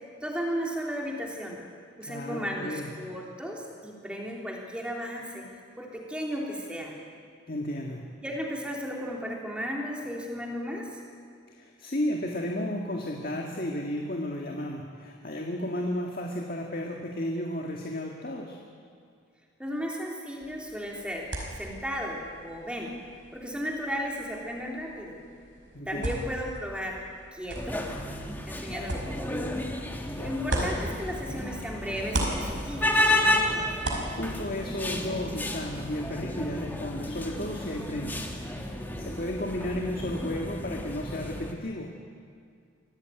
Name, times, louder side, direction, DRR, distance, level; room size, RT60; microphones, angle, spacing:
voice 1, 0.2-1.6 2.0-5.4 5.8-6.9 8.2-11.0 19.6-21.3 21.6-23.0 23.3-25.2 25.9-27.0 27.3-27.8 28.5-29.5 30.2-33.0, equal, 5° right, -1 dB, 3.5 m, -34 dB
voice 2, 2.0-2.9 7.5-8.1 11.5-18.6 25.7-26.3 30.1-30.4 33.8-38.6 39.0-41.9, left 1 dB, 45° left, 1 dB, 1.9 m, -33 dB
sound 1, 20.4-31.6 31.9-35.3, right 1 dB, 70° right, 5.1 m, -38 dB
sound 2, 27.5-41.5, left 1 dB, 10° left, 1.8 m, -32 dB
25.0 x 16.5 x 9.4 m, 2.3 s
head